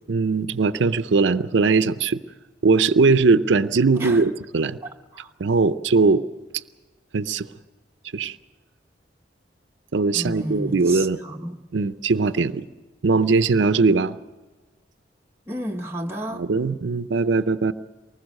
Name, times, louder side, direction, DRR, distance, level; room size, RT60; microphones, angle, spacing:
voice 1, 0.1-2.2 2.6-4.8 5.4-6.2 7.1-7.5 8.1-8.4 9.9-11.2 11.7-12.6 13.0-14.2 16.3-17.7, right 4 dB, 90° right, 0.6 m, -20 dB
voice 2, 4.8-5.3 10.1-11.6 15.5-16.4, right 1 dB, 15° right, 1.1 m, -32 dB
24.0 x 20.0 x 6.4 m
head